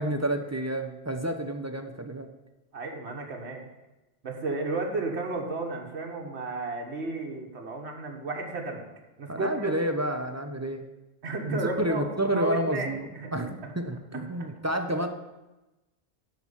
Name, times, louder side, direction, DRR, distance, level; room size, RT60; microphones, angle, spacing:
voice 1, 0.0-2.3 9.3-10.8 11.5-15.1, right 1 dB, 20° right, 6 dB, 0.6 m, -30 dB
voice 2, 2.7-3.7 4.2-8.9 9.2-9.8 11.2-12.9 13.2-13.3 14.1-14.5, right 3 dB, 75° right, 1 dB, 1.6 m, -33 dB
10.5 x 4.4 x 7.1 m, 1.0 s
omnidirectional pair, 1.1 m